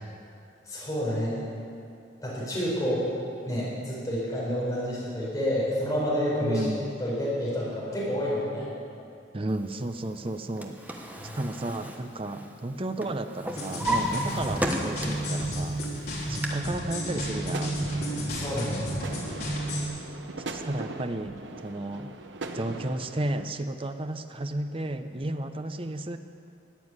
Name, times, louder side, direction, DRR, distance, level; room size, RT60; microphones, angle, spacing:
voice 1, 0.7-1.4 2.2-3.1 3.4-6.7 7.0-8.7 11.2-11.4 16.3-16.4 18.3-18.8, equal, 20° left, -7 dB, 5.1 m, -29 dB
voice 2, 6.4-6.9 9.3-10.8 11.3-15.8 16.3-17.8 20.5-22.1 22.5-26.2, right 1 dB, 30° right, 8 dB, 0.7 m, -32 dB
Drawer open or close, 10.3-12.7 13.0-15.3 15.8-16.5, right 1 dB, 10° right, 1.2 m, -33 dB
sound 1, 13.5-19.8, equal, 60° left, 3.7 m, -32 dB
sound 2, 17.3-23.5, right 2 dB, 80° right, 1.0 m, -40 dB
14.5 x 9.3 x 9.6 m, 2.5 s
head